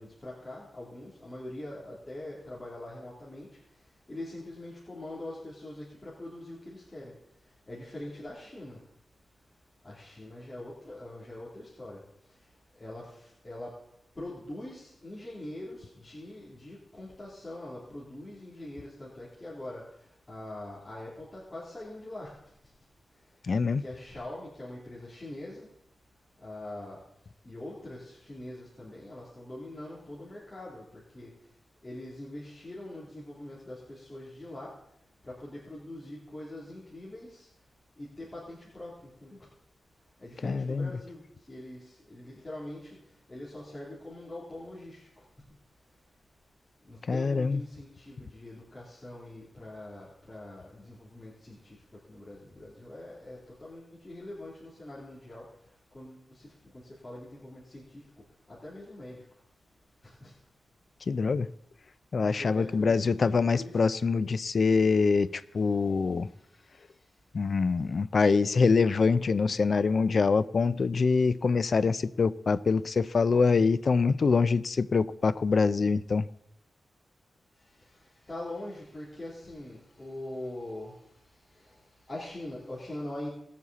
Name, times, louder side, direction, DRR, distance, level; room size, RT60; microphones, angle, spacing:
voice 1, 0.0-3.5 4.1-7.1 7.7-8.8 9.8-12.0 12.8-13.7 14.2-19.8 20.3-22.3 23.6-25.7 26.4-27.0 27.4-31.3 31.8-34.7 35.2-37.5 38.0-39.4 40.2-41.2 41.5-43.0 43.3-45.1 46.9-51.8 52.1-55.5 55.9-56.5 56.7-58.0 58.5-59.2 60.0-60.3 62.4-63.8 78.3-80.9 81.6-81.7 82.1-83.3, left 1 dB, 20° left, 2.8 m, -43 dB
voice 2, 23.5-23.8 40.4-40.9 47.1-47.6 61.1-61.5 62.1-66.3 67.3-76.3, left 4 dB, 45° left, 0.4 m, -25 dB
19.0 x 7.4 x 4.0 m
wide cardioid pair, 155°, 0 cm